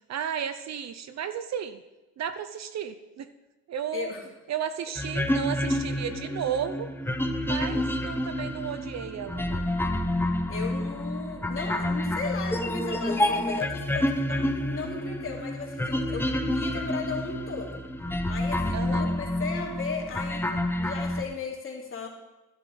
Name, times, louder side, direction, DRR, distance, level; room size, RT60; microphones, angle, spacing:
voice 1, 0.1-1.8 2.2-3.3 3.7-4.1 4.5-6.9 7.4-9.6 18.7-19.1, right 8 dB, 50° right, 11 dB, 0.7 m, -33 dB
voice 2, 3.9-4.2 10.5-17.8 18.3-22.1, left 4 dB, 35° left, -1 dB, 2.9 m, -36 dB
sound 1, 5.0-21.2, left 1 dB, 5° left, 0.9 m, -29 dB
12.0 x 11.5 x 3.9 m, 1.0 s
cardioid pair, 100°, 35 cm